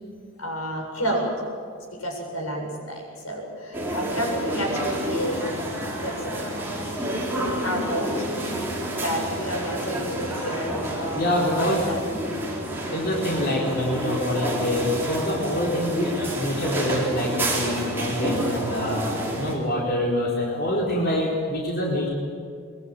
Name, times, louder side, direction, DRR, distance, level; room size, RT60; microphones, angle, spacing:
voice 1, 0.4-1.3 1.9-5.5 6.0-6.5 7.6-8.3 9.0-12.2, equal, 85° left, 1 dB, 7.6 m, -30 dB
sound 1, 3.7-19.5, right 1 dB, 10° right, 4.5 m, -29 dB
voice 2, 11.1-11.8 12.9-19.0 19.4-22.1, left 1 dB, 45° left, -4 dB, 4.4 m, -25 dB
23.5 x 22.5 x 9.1 m, 2.1 s
head